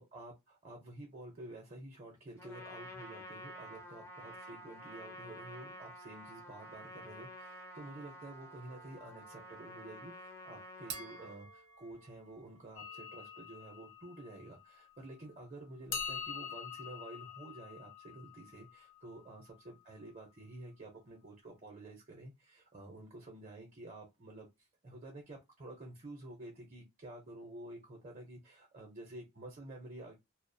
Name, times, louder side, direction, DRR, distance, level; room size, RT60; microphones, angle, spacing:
voice 1, 0.0-30.2, right 2 dB, 35° right, 0.6 m, -50 dB
Trumpet, 2.4-11.4, equal, 10° left, 0.4 m, -50 dB
sound 1, 8.7-13.5, right 6 dB, 85° right, 0.6 m, -53 dB
sound 2, 12.8-15.2 15.9-19.8, left 7 dB, 60° left, 0.5 m, -45 dB
2.3 x 2.0 x 2.6 m
head